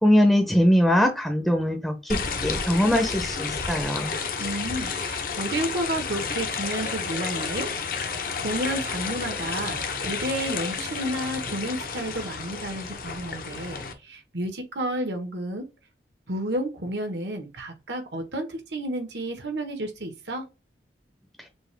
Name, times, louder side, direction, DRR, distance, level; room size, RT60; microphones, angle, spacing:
voice 1, 0.0-4.1, equal, ahead, 0.7 m, -22 dB
sound 1, 2.1-13.9, left 5 dB, 50° left, 0.8 m, -31 dB
voice 2, 4.4-15.6 16.3-20.4, right 1 dB, 80° right, 1.4 m, -31 dB
6.1 x 2.5 x 3.4 m
head